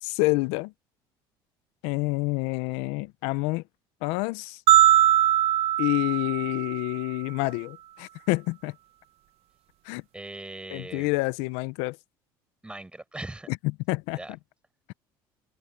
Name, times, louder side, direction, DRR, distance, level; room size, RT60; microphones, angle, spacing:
voice 1, 0.0-0.7 1.8-3.6 4.0-4.6 5.8-8.7 9.8-10.0 10.7-12.0 13.9-14.2, left 23 dB, 80° left, 0.6 m, -28 dB
sound 1, 4.7-7.0, right 13 dB, 70° right, 1.1 m, -21 dB
voice 2, 10.1-11.1 12.6-13.5 14.1-14.3, right 2 dB, 10° right, 5.0 m, -39 dB
supercardioid pair, 90°, 11 cm